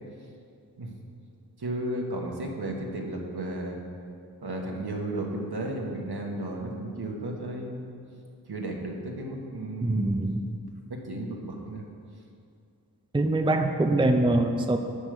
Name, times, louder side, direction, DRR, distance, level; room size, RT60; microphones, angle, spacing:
voice 1, 1.6-3.8 4.4-7.9 8.5-10.1 10.9-11.8, right 1 dB, 65° right, 0 dB, 1.4 m, -34 dB
voice 2, 9.8-10.5 13.1-14.8, right 2 dB, 10° right, 5 dB, 0.6 m, -24 dB
9.9 x 6.4 x 5.0 m, 2.4 s
cardioid pair, 40°, 41 cm